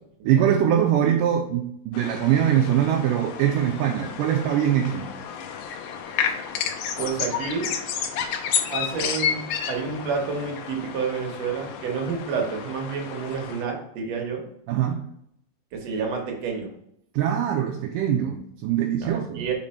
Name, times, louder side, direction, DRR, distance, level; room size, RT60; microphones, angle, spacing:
voice 1, 0.2-5.1 14.7-15.0 17.1-19.5, right 10 dB, 80° right, 2 dB, 2.0 m, -22 dB
sound 1, 1.9-13.6, left 8 dB, 80° left, 2.2 m, -31 dB
voice 2, 7.0-7.7 8.7-14.5 15.7-16.7 19.0-19.5, right 5 dB, 65° right, 1 dB, 1.9 m, -29 dB
5.2 x 5.0 x 4.2 m, 0.73 s
omnidirectional pair, 4.0 m